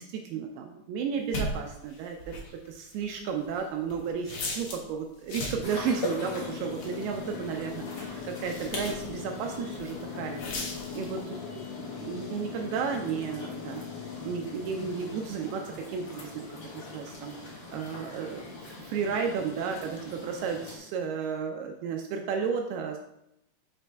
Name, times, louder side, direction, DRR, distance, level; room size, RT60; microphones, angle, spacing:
voice 1, 0.0-2.4 2.7-10.4 10.9-11.4 11.8-13.8 14.3-16.5 16.7-23.0, right 6 dB, 80° right, 2 dB, 2.4 m, -33 dB
sound 1, 1.3-4.9 5.2-5.8 6.4-9.2 9.5-10.0 10.3-11.2, left 2 dB, 60° left, 2.1 m, -37 dB
sound 2, 5.6-20.8, left 4 dB, 80° left, 1.0 m, -40 dB
6.3 x 5.0 x 3.3 m, 0.81 s
omnidirectional pair, 4.8 m